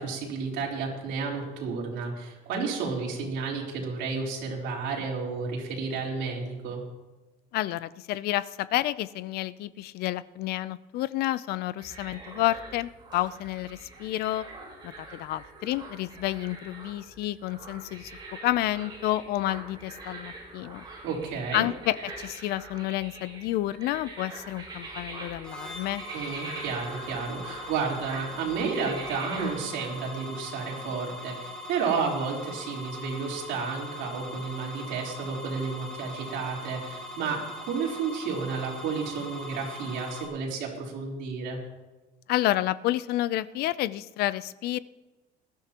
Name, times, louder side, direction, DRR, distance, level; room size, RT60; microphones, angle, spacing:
voice 1, 0.0-6.8 21.0-21.7 26.1-41.6, right 5 dB, 80° right, -2 dB, 3.9 m, -32 dB
voice 2, 7.5-14.5 14.8-18.1 18.4-20.8 21.5-26.0 42.3-44.8, left 15 dB, 60° left, 17 dB, 0.5 m, -30 dB
sound 1, 11.8-29.5, right 2 dB, 25° right, 5.4 m, -44 dB
sound 2, 25.4-40.2, left 1 dB, 5° left, 2.2 m, -41 dB
20.0 x 13.5 x 3.0 m, 1.1 s
cardioid pair, 170°, 18 cm